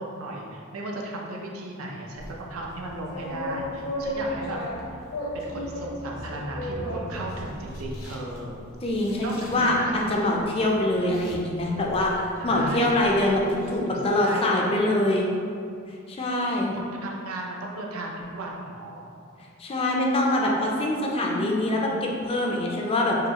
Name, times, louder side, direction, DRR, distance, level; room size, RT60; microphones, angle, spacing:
voice 1, 0.0-4.6 5.3-8.5 9.2-10.0 12.4-12.9 13.8-15.4 16.7-19.0, right 2 dB, 80° right, -1 dB, 0.6 m, -36 dB
sound 1, 2.2-13.8, left 1 dB, 75° left, 0.9 m, -36 dB
voice 2, 8.8-15.3 16.1-16.8 19.6-23.2, left 1 dB, 25° left, -2 dB, 0.4 m, -24 dB
4.7 x 2.3 x 2.8 m, 2.3 s
head